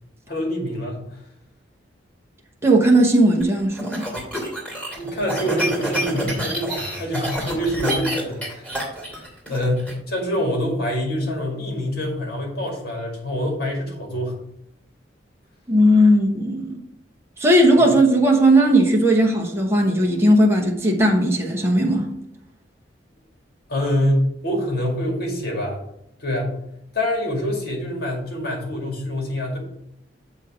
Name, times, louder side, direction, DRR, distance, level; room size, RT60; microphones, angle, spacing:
voice 1, 0.3-1.2 5.0-14.3 17.8-17.9 23.7-25.8 26.2-26.5 26.9-29.6, equal, 60° left, 2.1 m, -25 dB
voice 2, 2.6-4.1 15.7-16.8 17.4-22.1, right 1 dB, 15° right, 1.0 m, -17 dB
sound 1, 3.4-9.9, equal, 10° left, 2.6 m, -28 dB
7.6 x 3.3 x 6.0 m
head